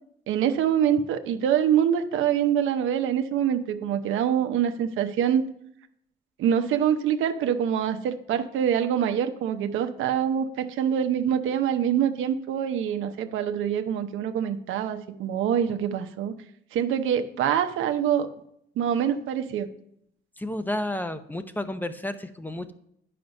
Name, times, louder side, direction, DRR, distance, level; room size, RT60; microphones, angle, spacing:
voice 1, 0.3-5.4 6.4-16.3 16.7-18.3 18.8-19.7, right 9 dB, 80° right, 7 dB, 0.8 m, -25 dB
voice 2, 20.4-22.7, left 1 dB, 10° left, 10 dB, 0.7 m, -31 dB
9.5 x 5.9 x 5.2 m, 0.73 s
cardioid pair, 90°, 20 cm